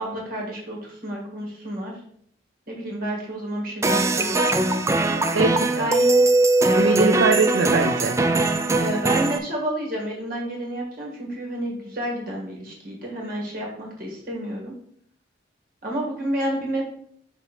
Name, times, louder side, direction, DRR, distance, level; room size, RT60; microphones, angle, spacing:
voice 1, 0.0-1.9 2.7-4.5 5.8-6.3 8.7-14.7 15.8-16.8, right 1 dB, 50° right, -2 dB, 2.1 m, -30 dB
sound 1, 3.8-9.4, right 2 dB, 15° right, 0.4 m, -20 dB
voice 2, 5.3-5.9 6.7-8.2, right 3 dB, 70° right, 4 dB, 0.5 m, -22 dB
5.6 x 4.6 x 4.3 m, 0.65 s
head